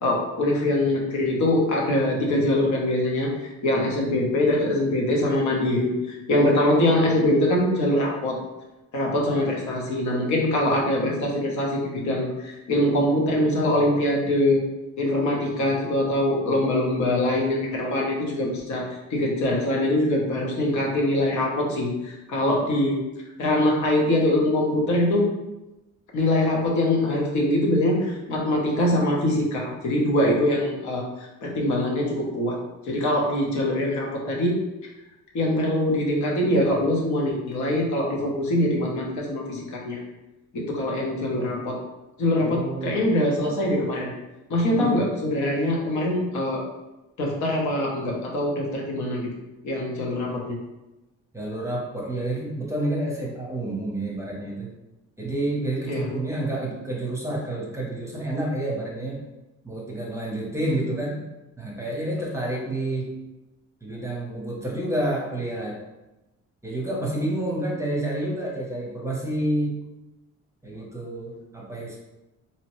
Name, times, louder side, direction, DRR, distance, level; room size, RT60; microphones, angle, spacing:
voice 1, 0.0-8.4 8.9-14.6 15.0-18.8 19.1-23.0 23.4-25.3 26.1-32.6 32.9-34.6 35.3-40.0 40.5-41.8 42.2-44.1 44.5-46.6 47.2-49.3 49.6-50.6 55.9-56.1 60.6-60.8, left 1 dB, 70° left, -2 dB, 0.8 m, -23 dB
voice 2, 42.4-43.2 44.7-45.0 51.3-54.7 55.2-59.2 59.6-61.2 61.6-63.1 63.8-65.8 66.6-69.8 70.6-72.0, right 1 dB, 10° right, -3 dB, 0.7 m, -29 dB
2.8 x 2.1 x 3.0 m, 0.99 s
cardioid pair, 90°, 30 cm